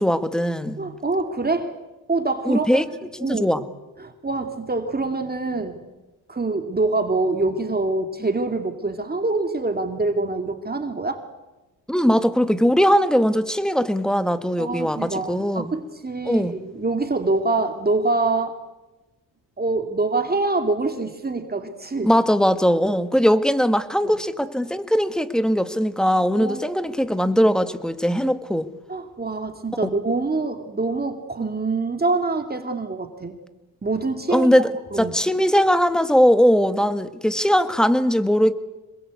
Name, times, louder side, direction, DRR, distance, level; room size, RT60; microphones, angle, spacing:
voice 1, 0.0-0.8 2.5-2.9 3.2-3.6 11.9-15.7 16.3-16.5 22.0-28.7 29.8-29.9 34.3-38.5, equal, ahead, 11 dB, 1.7 m, -20 dB
voice 2, 0.8-1.7 2.1-2.8 3.2-3.5 4.0-5.8 6.3-11.2 14.6-18.6 19.6-22.1 24.0-24.1 26.3-26.6 28.9-33.4 33.8-35.1, right 3 dB, 25° right, 5 dB, 2.7 m, -25 dB
26.5 x 21.5 x 8.4 m, 1.1 s
cardioid pair, 80°, 38 cm